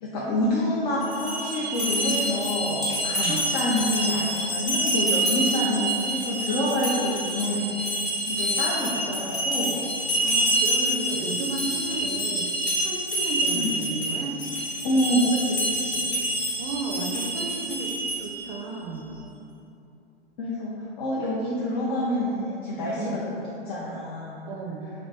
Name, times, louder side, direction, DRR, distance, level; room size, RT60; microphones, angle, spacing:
voice 1, 0.0-8.0 8.3-9.8 13.5-13.7 14.8-16.0 20.4-20.7 21.0-23.4 23.7-24.4, left 1 dB, 35° left, -6 dB, 0.5 m, -27 dB
sound 1, 1.0-18.5, right 1 dB, 80° left, 1.2 m, -27 dB
voice 2, 10.2-12.5 12.8-14.4 16.6-19.1 22.9-23.2 24.5-24.9, right 3 dB, 45° right, 1 dB, 0.5 m, -33 dB
3.0 x 2.5 x 3.3 m, 2.8 s
figure-of-eight pair, 105°, 32 cm